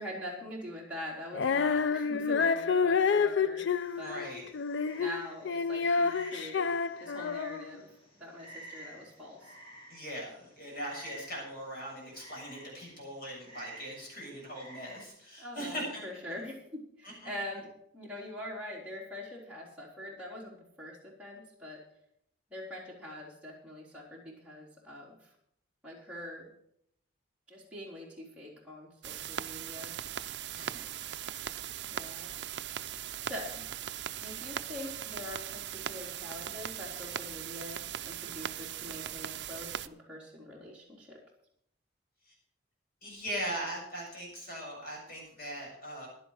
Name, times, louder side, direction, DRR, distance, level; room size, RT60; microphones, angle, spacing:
voice 1, 0.0-3.7 4.0-4.2 5.0-6.7 7.0-7.9 8.2-9.6 15.4-21.8 22.5-25.3 25.8-26.5 27.5-29.9 31.9-32.3 32.6-32.8 33.2-33.7 34.2-41.2, left 1 dB, 5° right, -6 dB, 3.8 m, -44 dB
Female singing, 1.3-7.8, left 5 dB, 70° left, 0.5 m, -29 dB
Frog, 3.7-15.0, right 1 dB, 30° left, 3.2 m, -52 dB
voice 2, 4.0-4.5 9.9-16.0 17.0-17.1 30.6-30.9 43.0-46.1, equal, 50° left, -2 dB, 7.2 m, -40 dB
sound 1, 29.0-39.9, right 10 dB, 65° right, 0.5 m, -39 dB
15.5 x 11.0 x 4.9 m, 0.70 s
head